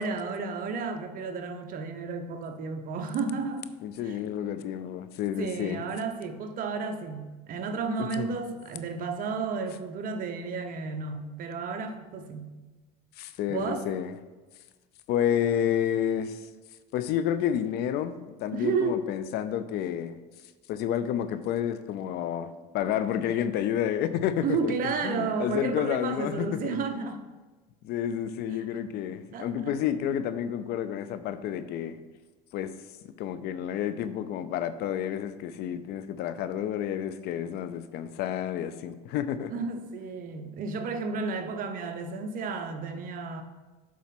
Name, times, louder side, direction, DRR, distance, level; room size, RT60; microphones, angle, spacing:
voice 1, 0.0-3.7 4.0-4.2 5.4-12.5 13.5-13.9 18.5-19.1 24.4-27.2 29.3-29.7 39.5-43.4, right 4 dB, 50° right, 6 dB, 0.9 m, -32 dB
voice 2, 3.8-5.8 8.0-8.3 13.2-14.1 15.1-16.4 16.9-20.2 20.7-24.7 25.0-26.7 27.8-32.0 32.5-32.7 33.2-39.6, left 9 dB, 60° left, 12 dB, 0.5 m, -30 dB
7.4 x 4.2 x 5.9 m, 1.2 s
supercardioid pair, 115°, 19 cm